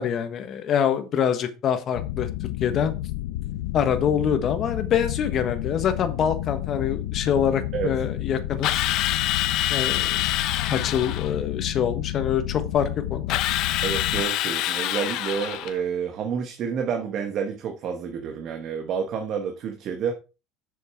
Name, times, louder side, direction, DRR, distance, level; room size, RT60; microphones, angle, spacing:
voice 1, 0.0-2.3 2.6-2.9 3.7-8.8 9.7-10.2 10.7-13.4, left 8 dB, 40° left, 9 dB, 1.3 m, -25 dB
sound 1, 1.9-14.2, left 15 dB, 90° left, 0.6 m, -31 dB
Drill, 8.6-11.3 13.3-15.8, left 14 dB, 55° left, 0.7 m, -26 dB
voice 2, 13.8-20.1, right 7 dB, 45° right, 6 dB, 1.2 m, -29 dB
7.4 x 6.4 x 4.7 m, 0.31 s
cardioid pair, 145°, 0 cm